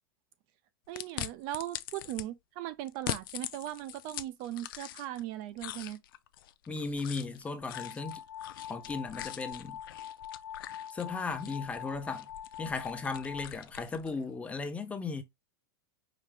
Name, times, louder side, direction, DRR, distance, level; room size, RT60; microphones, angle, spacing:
voice 1, 0.9-6.0, right 13 dB, 45° right, 0.4 m, -38 dB
sound 1, 1.0-2.3 2.9-5.2 5.6-14.2, left 13 dB, 70° left, 0.5 m, -43 dB
voice 2, 6.7-8.2 8.7-9.8 10.9-12.3 12.6-15.2, left 4 dB, 10° left, 0.6 m, -36 dB
sound 2, 7.7-13.5, left 10 dB, 90° left, 1.1 m, -44 dB
4.9 x 2.8 x 3.3 m
supercardioid pair, 135°, 12 cm